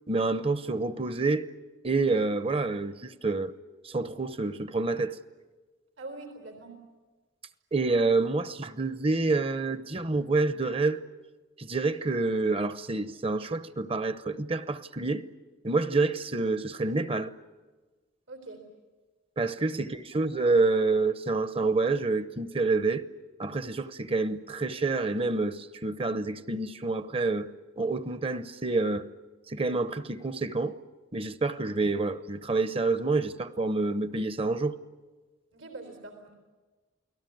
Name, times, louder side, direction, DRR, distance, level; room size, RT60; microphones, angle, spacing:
voice 1, 0.1-1.5 1.8-3.5 3.8-5.2 7.7-11.0 11.6-15.3 15.6-17.3 19.4-23.0 23.4-27.5 27.8-29.0 29.5-30.7 31.1-34.7, right 3 dB, 30° right, 0.9 m, -28 dB
voice 2, 6.0-6.8 18.3-18.6 20.1-20.2 35.5-36.3, right 2 dB, 80° right, 3.8 m, -43 dB
29.0 x 19.0 x 9.4 m
head